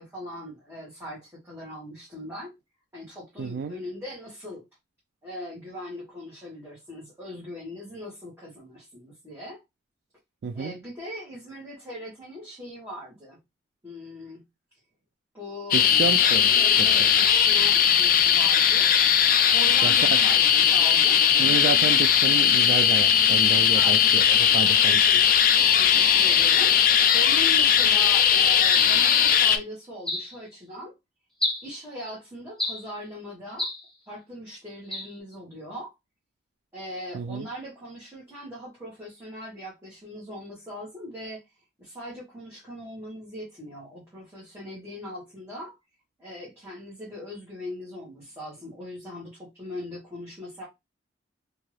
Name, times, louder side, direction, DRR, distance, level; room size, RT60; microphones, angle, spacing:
voice 1, 0.0-2.5 2.9-4.7 5.2-9.6 10.5-13.4 13.8-14.4 15.3-15.8 16.2-18.9 19.5-21.2 23.7-24.0 24.8-25.2 25.7-30.9 31.6-33.7 34.1-35.9 36.7-41.4 41.8-45.7 46.2-50.7, left 1 dB, 15° right, 1.2 m, -40 dB
voice 2, 3.4-3.7 10.4-10.7 15.7-16.5 19.8-20.2 21.4-25.1 37.1-37.5, right 5 dB, 60° right, 0.3 m, -30 dB
sound 1, 15.7-29.6, left 8 dB, 50° left, 0.4 m, -19 dB
sound 2, 30.1-30.4 31.4-31.7 32.6-32.9 33.6-33.9 34.9-35.1, left 1 dB, 5° left, 0.9 m, -30 dB
2.7 x 2.4 x 3.1 m
head